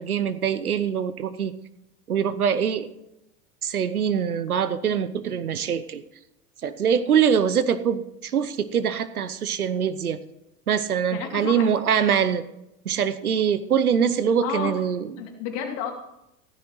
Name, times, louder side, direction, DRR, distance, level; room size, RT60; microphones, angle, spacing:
voice 1, 0.0-1.5 2.1-2.9 3.6-6.0 6.6-10.2 10.7-12.4 12.8-15.3, right 7 dB, 85° right, 13 dB, 0.9 m, -23 dB
voice 2, 11.1-11.7 12.0-12.2 14.4-14.8 15.2-15.9, left 7 dB, 50° left, 3 dB, 2.9 m, -31 dB
16.0 x 13.5 x 3.1 m, 0.86 s
hypercardioid pair, 90°, 43 cm